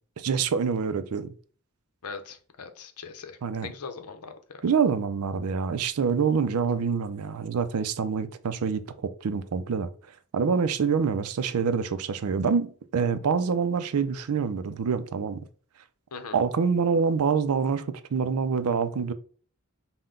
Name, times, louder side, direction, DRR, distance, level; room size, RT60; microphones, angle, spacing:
voice 1, 0.2-1.3 3.4-3.7 4.6-9.9 10.3-15.4 16.3-19.1, right 6 dB, 70° right, 0.4 m, -26 dB
voice 2, 2.0-4.6 16.1-16.4, left 5 dB, 80° left, 0.7 m, -41 dB
5.6 x 2.2 x 3.7 m
head